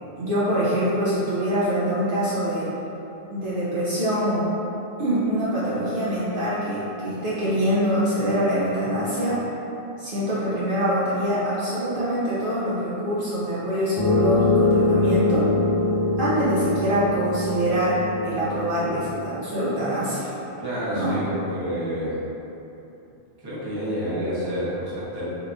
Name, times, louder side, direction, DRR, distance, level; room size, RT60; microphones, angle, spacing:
voice 1, 0.2-2.7 3.3-4.5 5.0-9.4 10.0-15.5 16.2-20.3 20.9-21.2, equal, 55° right, -10 dB, 0.8 m, -24 dB
sound 1, 14.0-19.2, left 2 dB, 40° left, 0.3 m, -23 dB
voice 2, 20.6-22.2 23.4-25.3, equal, 25° right, -10 dB, 0.7 m, -29 dB
3.3 x 2.8 x 2.5 m, 2.9 s
omnidirectional pair, 1.1 m